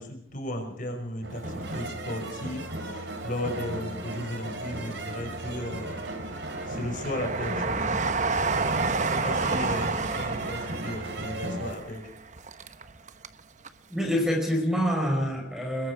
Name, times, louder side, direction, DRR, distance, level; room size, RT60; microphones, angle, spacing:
voice 1, 0.0-6.0 6.7-8.0 9.0-12.1, left 1 dB, 45° left, 4 dB, 5.6 m, -35 dB
sound 1, 1.2-11.7, right 1 dB, 75° right, 4.0 m, -36 dB
Train, 1.4-2.7 3.1-4.1 4.6-13.4 13.6-13.7, right 4 dB, 40° right, 1.0 m, -31 dB
voice 2, 13.9-15.9, equal, 5° right, 2 dB, 4.9 m, -26 dB
25.5 x 22.0 x 4.9 m, 0.62 s
head